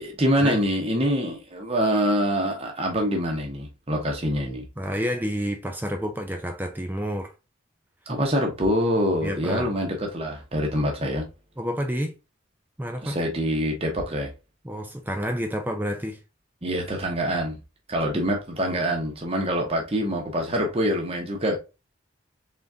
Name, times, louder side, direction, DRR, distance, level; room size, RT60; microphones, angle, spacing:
voice 1, 0.0-4.7 8.1-11.3 13.0-14.3 16.6-17.6 17.9-21.6, equal, 30° right, 0.9 m, -25 dB
voice 2, 4.8-7.3 9.2-9.7 11.6-12.1 12.8-13.2 14.6-16.2, equal, 10° right, 0.4 m, -29 dB
3.7 x 3.6 x 2.6 m
head